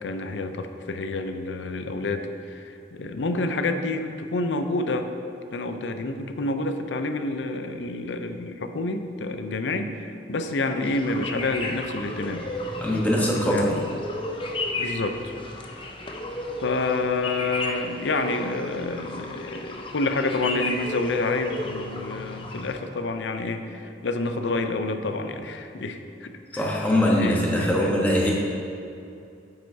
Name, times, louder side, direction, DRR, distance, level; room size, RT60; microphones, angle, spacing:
voice 1, 0.0-5.1 5.5-12.5 13.2-13.9 14.8-15.3 16.6-27.9, left 2 dB, 80° left, 7 dB, 0.5 m, -28 dB
sound 1, 10.8-22.7, left 2 dB, 30° left, 0.5 m, -34 dB
voice 2, 12.8-13.8 26.5-28.3, equal, 10° left, -3 dB, 1.1 m, -22 dB
9.1 x 7.7 x 2.7 m, 2.6 s
head